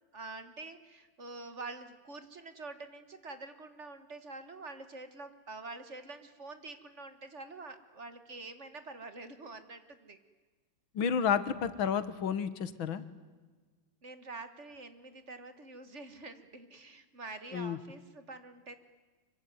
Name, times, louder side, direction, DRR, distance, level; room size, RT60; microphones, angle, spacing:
voice 1, 0.1-10.2 14.0-18.8, right 3 dB, 40° right, 10 dB, 1.7 m, -46 dB
voice 2, 11.0-13.0 17.5-17.8, left 7 dB, 85° left, 14 dB, 2.1 m, -31 dB
25.0 x 23.0 x 9.4 m, 1.3 s
omnidirectional pair, 2.1 m